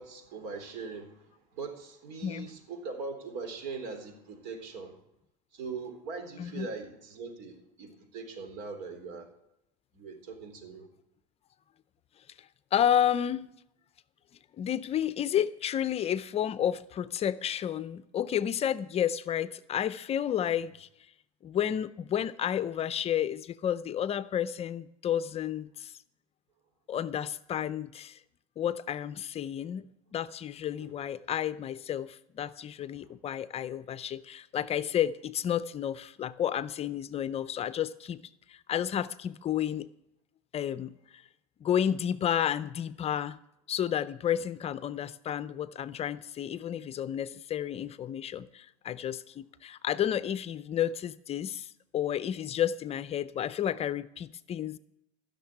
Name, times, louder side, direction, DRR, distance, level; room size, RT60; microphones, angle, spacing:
voice 1, 0.0-5.0 5.5-9.3 9.9-10.9 20.5-20.6 30.8-30.9 32.9-33.2, right 4 dB, 65° right, 3.7 m, -41 dB
voice 2, 12.7-13.5 14.6-20.9 21.4-25.9 26.9-28.2 28.6-38.2 38.5-39.9 40.5-41.2 41.6-43.4 43.7-54.8, left 10 dB, 30° left, 0.6 m, -31 dB
15.0 x 6.7 x 8.9 m
supercardioid pair, 110°, 19 cm